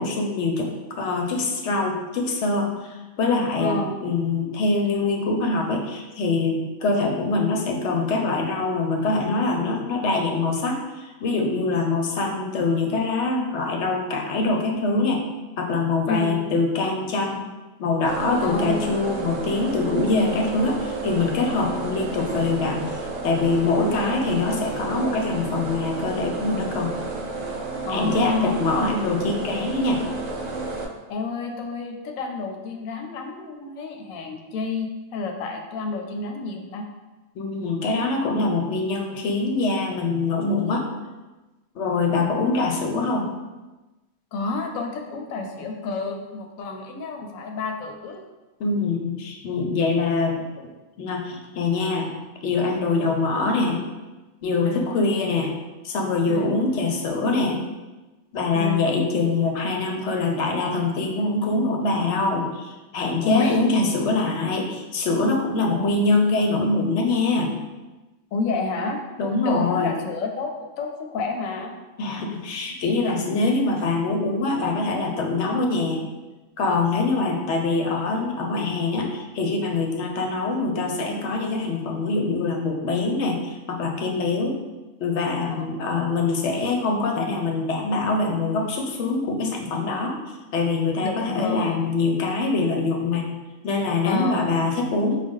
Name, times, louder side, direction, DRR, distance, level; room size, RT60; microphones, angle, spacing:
voice 1, 0.0-15.2 15.6-17.5 17.8-26.9 27.9-30.0 37.4-40.9 41.7-43.3 48.6-50.5 51.0-52.1 52.4-53.8 54.4-55.5 55.8-57.6 58.3-67.6 69.2-69.9 72.0-76.0 76.6-84.6 85.0-90.2 90.5-93.3 93.6-95.2, left 3 dB, 65° left, 2 dB, 0.8 m, -24 dB
voice 2, 3.6-4.0 16.1-16.4 18.4-19.0 27.8-28.5 31.1-36.9 42.1-42.4 44.3-48.2 54.6-54.9 56.3-56.5 58.5-58.8 63.2-63.6 65.6-66.1 68.3-71.7 85.5-86.0 91.0-91.8 94.0-94.5, left 3 dB, 90° left, 3 dB, 1.0 m, -30 dB
sound 1, 18.0-30.8, right 3 dB, 75° right, 0.9 m, -31 dB
4.7 x 2.2 x 3.6 m, 1.1 s
omnidirectional pair, 1.4 m